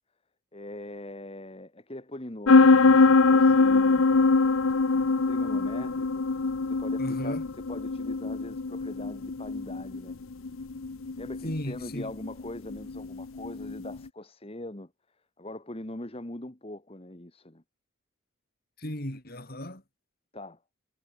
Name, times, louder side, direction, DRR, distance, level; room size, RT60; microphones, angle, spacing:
voice 1, 0.5-4.1 5.3-6.2 6.7-7.4 7.7-10.2 11.2-14.9 15.4-17.6 20.3-20.6, left 1 dB, 25° left, 1.6 m, -41 dB
sound 1, 2.5-14.0, left 3 dB, 75° left, 0.8 m, -23 dB
voice 2, 7.0-7.5 11.4-12.1 18.8-19.8, left 1 dB, 45° left, 4.5 m, -35 dB
head